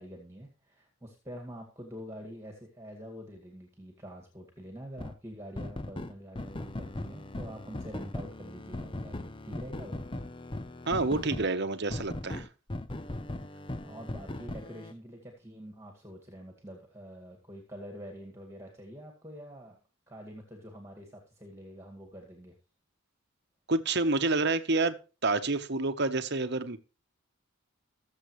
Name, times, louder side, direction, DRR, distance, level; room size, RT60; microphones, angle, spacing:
voice 1, 0.0-10.0 13.3-19.8 20.1-22.5, equal, 10° right, 2.0 m, -46 dB
sound 1, 5.0-5.2 5.6-11.5 11.9-14.9, left 1 dB, 25° left, 0.6 m, -38 dB
voice 2, 10.9-12.5 23.7-25.0 25.2-26.8, right 3 dB, 50° right, 1.1 m, -28 dB
20.5 x 7.5 x 3.2 m
head